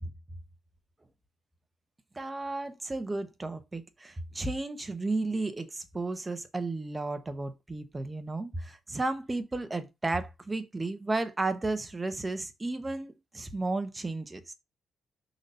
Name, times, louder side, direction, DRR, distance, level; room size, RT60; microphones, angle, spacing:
voice 1, 2.1-14.5, right 2 dB, 15° right, 1.1 m, -33 dB
5.9 x 4.1 x 5.3 m
cardioid pair, 125°, 0 cm